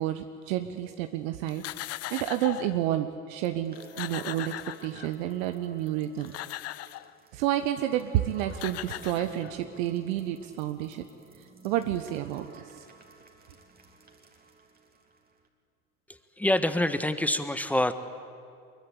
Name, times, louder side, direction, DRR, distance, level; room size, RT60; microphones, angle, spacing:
voice 1, 0.0-1.6 2.1-6.3 7.3-11.1 11.6-12.8, right 12 dB, 60° right, 8 dB, 1.2 m, -30 dB
sound 1, 1.5-2.8 3.4-3.5 3.7-5.3 6.0-7.1 8.2-8.3 8.5-9.8, left 15 dB, 35° left, 0.7 m, -39 dB
sound 2, 3.6-15.5, right 4 dB, 20° right, 2.8 m, -53 dB
voice 2, 16.1-17.9, left 1 dB, 5° left, 11 dB, 1.3 m, -26 dB
23.5 x 22.0 x 8.6 m, 2.3 s
hypercardioid pair, 85°, 44 cm